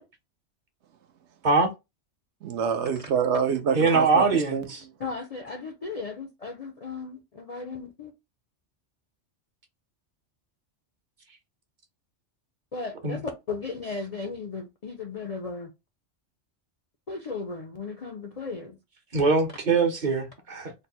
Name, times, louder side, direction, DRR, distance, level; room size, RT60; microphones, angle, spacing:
voice 1, 2.4-4.2 4.5-4.7, right 6 dB, 75° right, 0.9 m, -26 dB
voice 2, 3.7-4.8 13.0-13.2 19.1-20.7, right 4 dB, 45° right, 0.9 m, -22 dB
voice 3, 5.0-8.1 12.7-13.2 13.5-15.7 17.1-18.8, left 4 dB, 50° left, 0.4 m, -36 dB
3.2 x 2.1 x 4.2 m
omnidirectional pair, 1.2 m